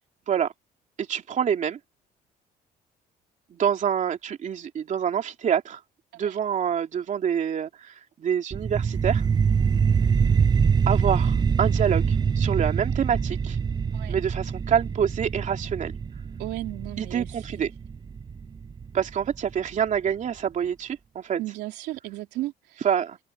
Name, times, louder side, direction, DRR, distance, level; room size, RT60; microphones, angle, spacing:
voice 1, 1.0-1.8 3.5-5.8 6.1-9.3 10.9-13.6 14.1-15.9 17.0-17.7 18.9-21.4 22.8-23.2, right 8 dB, 45° right, 3.0 m, -26 dB
sound 1, 8.5-19.5, right 6 dB, 25° right, 0.6 m, -24 dB
voice 2, 16.4-17.7 21.4-22.8, right 17 dB, 90° right, 3.2 m, -35 dB
cardioid pair, 110°, 17 cm